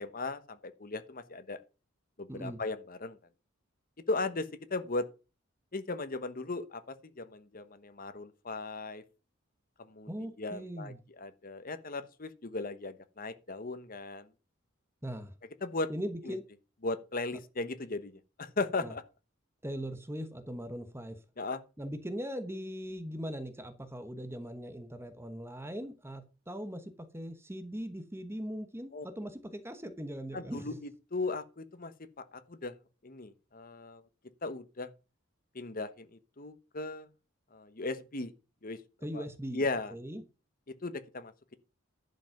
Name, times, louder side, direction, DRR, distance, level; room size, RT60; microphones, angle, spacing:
voice 1, 0.0-1.6 2.2-3.2 4.1-5.1 5.7-9.0 9.8-14.3 15.6-15.9 16.3-16.4 16.8-19.0 21.4-21.6 28.9-29.1 30.3-32.7 33.0-34.0 34.4-34.9 35.5-37.1 37.5-38.3 38.6-38.8 39.1-39.2 39.5-39.9 40.7-41.5, left 3 dB, 45° left, 1.1 m, -37 dB
voice 2, 2.3-2.6 10.1-11.0 15.0-15.3 15.9-16.4 18.8-18.9 19.6-21.2 21.8-30.8 39.0-39.6 39.9-40.2, equal, 10° right, 1.0 m, -40 dB
11.0 x 5.4 x 5.8 m
head